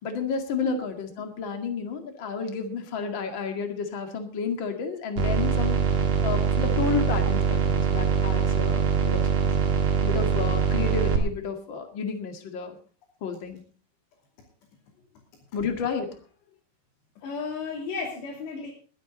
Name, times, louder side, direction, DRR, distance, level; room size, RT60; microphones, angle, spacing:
voice 1, 0.0-5.8 6.2-9.2 10.0-12.8 13.2-13.6 15.5-16.1, left 6 dB, 40° left, 5 dB, 1.9 m, -31 dB
sound 1, 5.2-11.2, right 6 dB, 45° right, 2.7 m, -23 dB
voice 2, 17.2-18.7, left 4 dB, 80° left, -3 dB, 5.2 m, -33 dB
21.5 x 9.7 x 4.0 m, 0.41 s
omnidirectional pair, 4.8 m